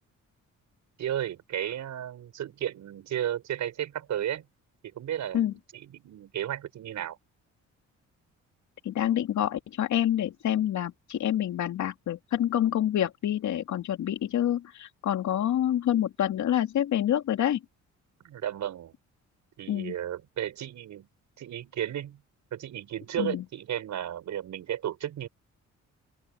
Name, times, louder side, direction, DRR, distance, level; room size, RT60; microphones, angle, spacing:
voice 1, 1.0-4.5 4.8-7.2 18.2-18.9 19.6-21.1 21.4-22.2 22.5-25.3, right 11 dB, 70° right, 6.1 m, -34 dB
voice 2, 8.8-17.6 19.7-19.9 23.2-23.4, left 11 dB, 70° left, 3.1 m, -27 dB
open air
cardioid pair, 90°, 30 cm